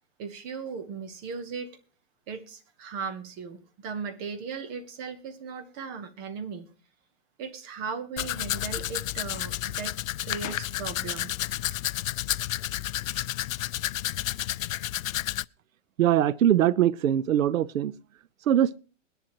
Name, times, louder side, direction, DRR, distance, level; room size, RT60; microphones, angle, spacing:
voice 1, 0.2-1.7 2.3-6.7 7.4-11.4, right 5 dB, 20° right, 0.8 m, -37 dB
Domestic sounds home sounds, 8.2-15.4, left 14 dB, 90° left, 0.5 m, -31 dB
voice 2, 16.0-17.9 18.5-18.8, right 11 dB, 85° right, 0.8 m, -22 dB
21.5 x 10.5 x 2.9 m
hypercardioid pair, 170°, 39 cm